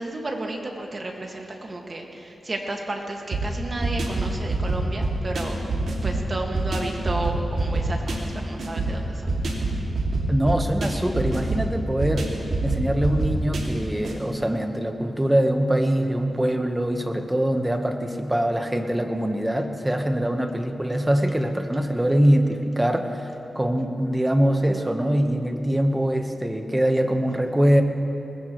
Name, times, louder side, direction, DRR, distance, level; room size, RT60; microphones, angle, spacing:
voice 1, 0.0-5.6 6.0-9.2, right 2 dB, 35° right, 1 dB, 1.9 m, -32 dB
sound 1, 3.3-14.2, right 2 dB, 80° right, 2.4 m, -26 dB
voice 2, 10.3-12.3 12.6-23.3 23.5-27.8, right 1 dB, 10° right, 5 dB, 1.2 m, -23 dB
21.0 x 20.0 x 3.2 m, 2.8 s
wide cardioid pair, 100°, 0 cm